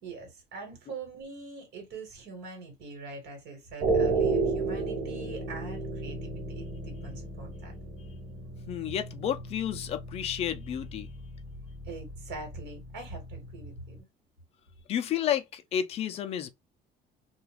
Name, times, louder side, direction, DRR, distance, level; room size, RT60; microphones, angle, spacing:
voice 1, 0.0-7.7 11.8-14.0, right 3 dB, 85° right, 1.4 m, -43 dB
sound 1, 3.8-14.0, right 3 dB, 55° right, 0.7 m, -34 dB
voice 2, 8.7-11.1 14.9-16.5, left 10 dB, 40° left, 0.4 m, -31 dB
2.4 x 2.2 x 3.1 m
cardioid pair, 175°, 17 cm